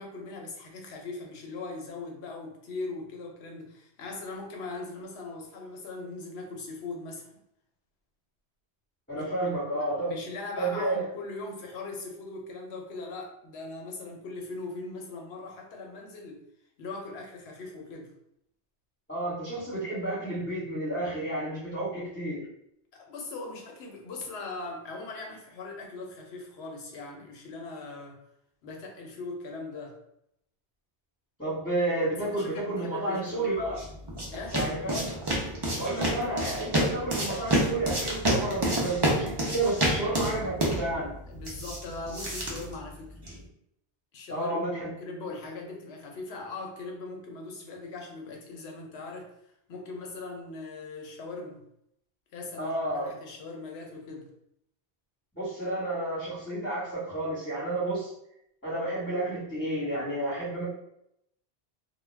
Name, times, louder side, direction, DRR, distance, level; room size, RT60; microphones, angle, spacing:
voice 1, 0.0-7.3 9.2-9.5 10.1-16.4 16.8-18.1 22.9-28.2 28.6-30.0 32.2-33.5 34.3-34.6 36.0-36.3 41.3-43.2 44.1-49.3 49.7-51.6 52.3-52.8 53.0-54.3, left 3 dB, 75° left, 1 dB, 0.9 m, -40 dB
voice 2, 9.1-10.1 10.6-11.0 19.1-22.5 31.4-33.8 34.5-35.2 35.8-41.1 44.3-44.9 52.6-53.1 55.3-58.1 58.6-60.7, right 2 dB, 10° left, -12 dB, 1.1 m, -31 dB
sound 1, 33.4-43.5, right 1 dB, 30° right, 0.5 m, -29 dB
2.3 x 2.2 x 3.2 m, 0.76 s
omnidirectional pair, 1.1 m